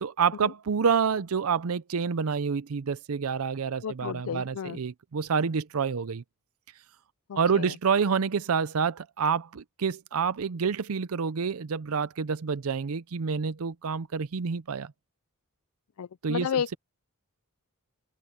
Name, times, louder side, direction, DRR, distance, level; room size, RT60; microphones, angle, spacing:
voice 1, 0.0-6.2 7.4-14.9 16.2-16.5, right 6 dB, 75° right, 0.5 m, -28 dB
voice 2, 3.8-4.8 7.3-7.8 16.0-16.8, left 8 dB, 70° left, 0.4 m, -33 dB
head